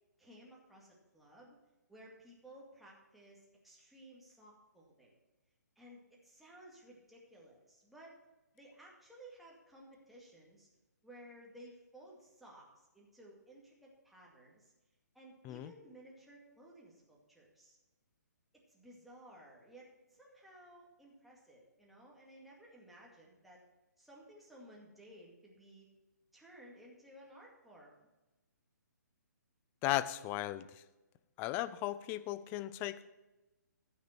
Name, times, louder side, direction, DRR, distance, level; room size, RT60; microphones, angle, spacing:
voice 1, 0.2-1.6 1.9-5.1 5.8-8.2 8.5-10.7 11.0-14.7 15.1-17.8 18.7-23.6 24.0-25.9 26.3-28.1, right 1 dB, ahead, -4 dB, 2.1 m, -57 dB
voice 2, 29.8-30.6 31.4-33.1, left 15 dB, 20° left, 15 dB, 0.4 m, -36 dB
14.0 x 6.5 x 4.5 m, 1.1 s
figure-of-eight pair, 140°, 10 cm